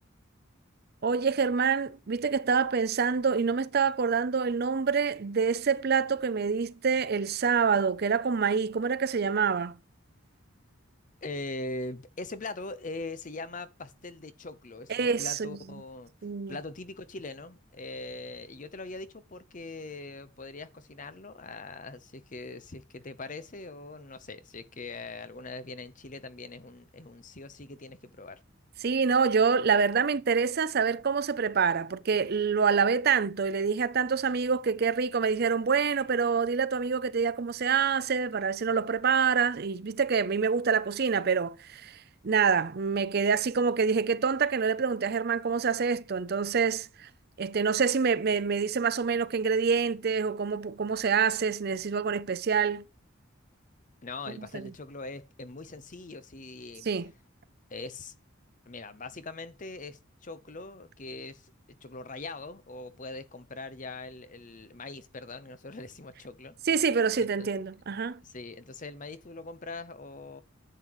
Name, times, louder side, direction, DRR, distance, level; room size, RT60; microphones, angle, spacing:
voice 1, 1.0-9.8 14.9-15.6 16.2-16.6 28.8-42.0 42.2-47.1 47.4-52.8 54.4-54.7 56.9-57.1 66.7-68.2, right 5 dB, 50° right, 0.5 m, -26 dB
voice 2, 11.2-16.1 16.5-28.4 54.0-56.9 57.7-58.1 58.7-61.5 61.8-66.5 67.2-67.5 68.2-70.4, left 3 dB, 40° left, 0.9 m, -41 dB
11.0 x 7.9 x 3.1 m
head